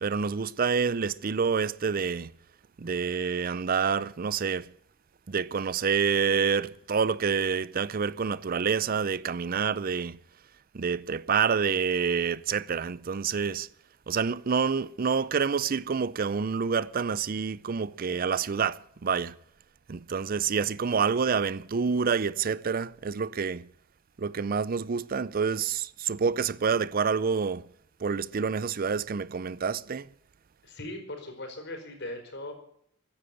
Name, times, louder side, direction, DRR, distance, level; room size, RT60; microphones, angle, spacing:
voice 1, 0.0-2.3 2.8-4.7 5.3-10.2 10.7-13.7 14.1-19.4 19.9-23.7 24.2-27.6 28.0-30.1, right 6 dB, 45° right, 0.5 m, -28 dB
voice 2, 30.6-32.5, left 1 dB, 60° left, 4.9 m, -39 dB
15.5 x 10.5 x 8.4 m
head